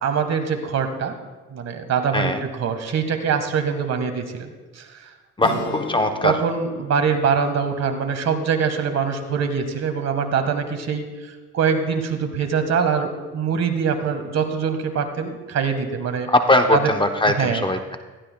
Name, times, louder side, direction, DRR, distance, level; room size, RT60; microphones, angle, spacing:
voice 1, 0.0-1.2 1.5-4.8 5.4-5.7 6.2-11.1 11.5-16.3 16.7-16.8 17.4-17.7, right 6 dB, 60° right, 6 dB, 1.7 m, -23 dB
sound 1, 5.4-9.6, left 5 dB, 70° left, 1.4 m, -39 dB
voice 2, 5.4-6.4 16.3-18.0, left 1 dB, 15° left, 6 dB, 0.9 m, -20 dB
20.0 x 14.5 x 2.3 m, 1.3 s
cardioid pair, 90°, 30 cm